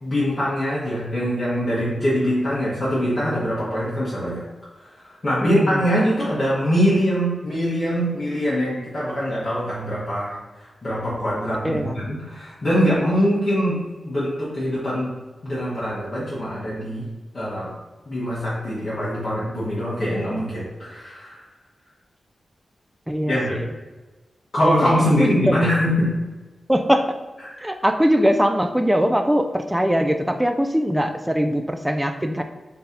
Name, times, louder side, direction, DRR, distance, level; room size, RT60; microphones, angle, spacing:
voice 1, 0.0-4.4 5.2-15.1 15.4-17.1 17.3-17.7 18.1-21.4 23.3-23.6 24.5-26.1, equal, 40° left, -10 dB, 1.1 m, -23 dB
voice 2, 5.4-5.8 11.6-12.0 23.1-23.7 24.6-24.9 25.2-25.3 26.7-27.1 27.6-32.4, equal, 5° right, 7 dB, 0.3 m, -21 dB
3.9 x 2.8 x 3.8 m, 1.2 s
wide cardioid pair, 140°, 0 cm